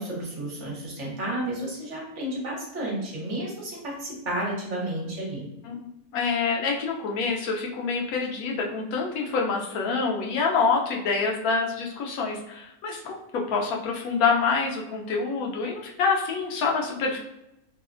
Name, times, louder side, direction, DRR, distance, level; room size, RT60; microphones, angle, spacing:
voice 1, 0.0-5.5, right 1 dB, 60° right, -4 dB, 1.1 m, -32 dB
voice 2, 6.1-17.2, left 4 dB, 90° left, 0 dB, 1.1 m, -26 dB
3.2 x 2.1 x 2.4 m, 0.86 s
omnidirectional pair, 1.5 m